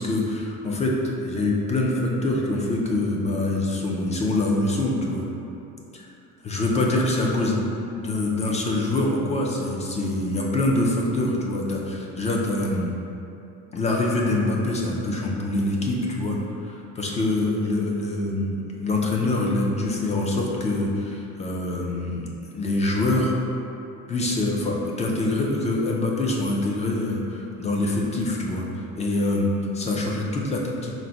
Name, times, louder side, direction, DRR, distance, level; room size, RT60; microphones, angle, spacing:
voice 1, 0.0-5.2 5.9-6.1 6.4-12.9 13.7-23.3 24.1-30.9, left 2 dB, 20° left, -2 dB, 0.3 m, -25 dB
3.9 x 2.0 x 4.4 m, 2.8 s
cardioid pair, 140°, 34 cm